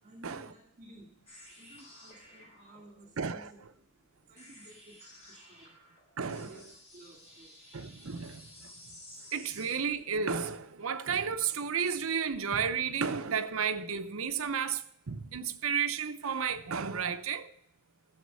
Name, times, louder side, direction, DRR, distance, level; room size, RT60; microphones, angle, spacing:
voice 1, 0.0-1.1 1.5-3.8 4.3-5.7 6.3-7.5, right 1 dB, 35° right, 2.3 m, -55 dB
sound 1, 1.3-9.8, left 1 dB, 30° left, 4.6 m, -54 dB
voice 2, 3.2-3.5 6.2-6.5 7.7-8.7 9.3-17.5, right 6 dB, 80° right, 0.8 m, -32 dB
12.5 x 7.2 x 5.5 m
head